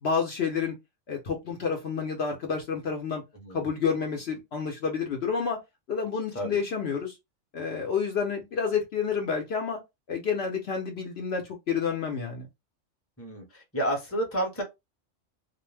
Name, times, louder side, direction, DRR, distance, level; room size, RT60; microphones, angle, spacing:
voice 1, 0.0-0.8 1.1-3.2 3.5-5.6 5.9-7.1 7.5-9.8 10.1-12.5, left 6 dB, 60° left, 0.9 m, -29 dB
voice 2, 13.2-14.6, right 1 dB, 10° left, 0.9 m, -30 dB
2.5 x 2.0 x 3.3 m
omnidirectional pair, 1.3 m